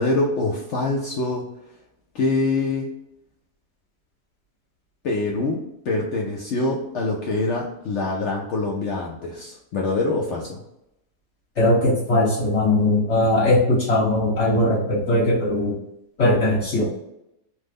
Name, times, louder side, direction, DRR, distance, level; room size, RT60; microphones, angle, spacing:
voice 1, 0.0-1.4 2.1-2.9 5.0-5.6 5.9-10.6, left 2 dB, 70° left, -2 dB, 0.6 m, -24 dB
voice 2, 11.6-15.7 16.2-16.9, left 1 dB, 50° left, -7 dB, 1.6 m, -19 dB
3.1 x 2.0 x 3.4 m, 0.83 s
omnidirectional pair, 1.7 m